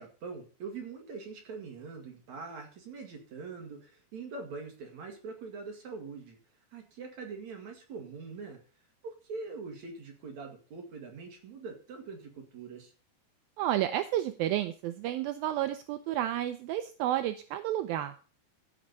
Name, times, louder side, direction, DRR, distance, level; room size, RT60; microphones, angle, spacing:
voice 1, 0.0-6.4 6.7-8.6 9.0-12.9, right 4 dB, 50° right, 3 dB, 2.8 m, -43 dB
voice 2, 13.6-18.2, right 12 dB, 80° right, 10 dB, 2.2 m, -31 dB
15.0 x 6.5 x 4.1 m, 0.38 s
omnidirectional pair, 4.7 m